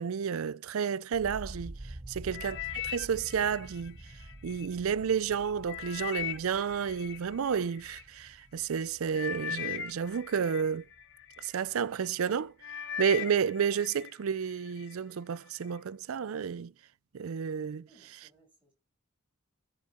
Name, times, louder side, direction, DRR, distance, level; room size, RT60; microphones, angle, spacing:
voice 1, 0.0-2.6 2.8-4.0 4.4-10.9 11.4-12.5 13.0-16.7 17.1-17.9, right 7 dB, 75° right, 0.4 m, -31 dB
sound 1, 1.1-11.1 11.4-12.1, right 1 dB, 30° right, 0.7 m, -48 dB
sound 2, 2.3-4.7 5.2-8.0 8.7-8.9 9.1-11.5 12.0-12.3 12.6-14.1 14.5-14.9 15.6-15.7, left 10 dB, 60° left, 1.0 m, -40 dB
voice 2, 17.9-18.7, right 1 dB, 5° right, 5.7 m, -64 dB
13.5 x 5.5 x 4.4 m
head